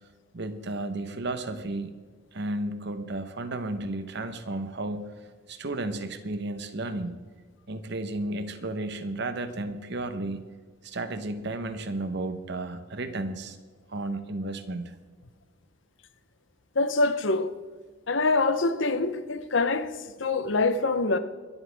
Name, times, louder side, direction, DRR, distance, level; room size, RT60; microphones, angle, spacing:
voice 1, 0.3-1.9 2.3-5.1 5.5-7.2 7.7-10.4 10.8-13.6 13.9-14.9, right 2 dB, 60° right, 1.0 m, -33 dB
voice 2, 16.8-17.5 18.1-21.2, left 3 dB, 65° left, 0.8 m, -25 dB
25.0 x 8.3 x 3.5 m
head